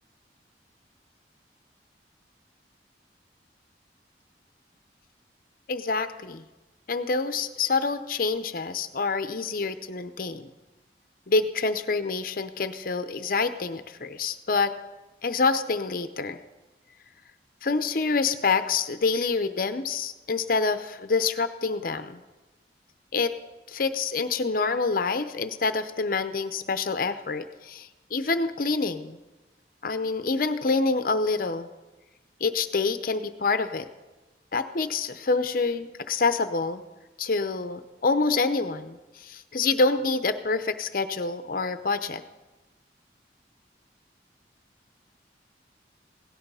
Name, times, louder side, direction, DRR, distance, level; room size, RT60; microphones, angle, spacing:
voice 1, 5.7-6.4 6.9-10.5 11.3-14.7 15.2-16.4 17.6-22.2 23.1-23.3 23.7-29.2 29.8-31.7 32.4-33.9 34.5-36.8 37.2-42.2, left 4 dB, 50° left, 10 dB, 0.7 m, -27 dB
17.0 x 11.5 x 5.5 m, 1.1 s
head